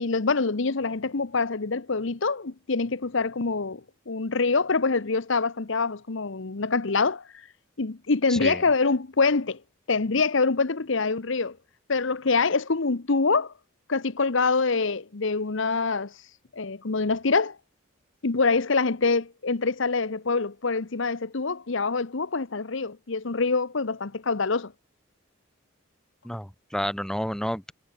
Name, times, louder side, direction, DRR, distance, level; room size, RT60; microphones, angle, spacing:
voice 1, 0.0-7.2 7.8-9.6 9.9-11.6 11.9-13.5 13.9-16.1 16.5-17.6 18.2-24.7, left 4 dB, 65° left, 0.9 m, -25 dB
voice 2, 26.2-27.7, equal, 5° left, 2.7 m, -30 dB
head